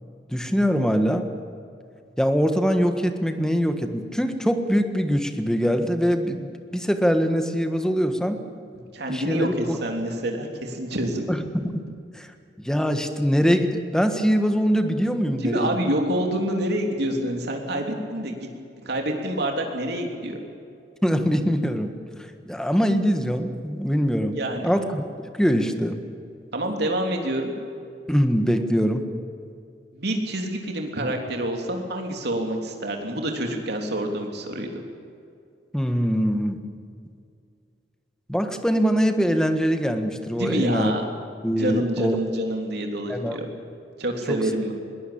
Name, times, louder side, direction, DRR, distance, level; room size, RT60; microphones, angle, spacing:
voice 1, 0.3-1.3 2.2-8.4 9.1-9.8 11.3-11.8 12.1-12.3 12.6-15.8 21.0-21.9 22.5-24.4 24.6-25.1 25.4-26.0 28.1-29.1 35.7-36.6 38.3-40.9 41.4-42.2 43.1-43.4 44.3-44.4, equal, 5° left, 7 dB, 1.5 m, -23 dB
voice 2, 8.7-11.2 15.4-18.5 18.8-20.4 24.3-24.7 26.5-27.5 29.9-34.7 40.3-41.0 41.6-43.5 44.0-44.7, right 1 dB, 65° right, 3 dB, 3.3 m, -27 dB
22.0 x 18.5 x 8.8 m, 2.4 s
head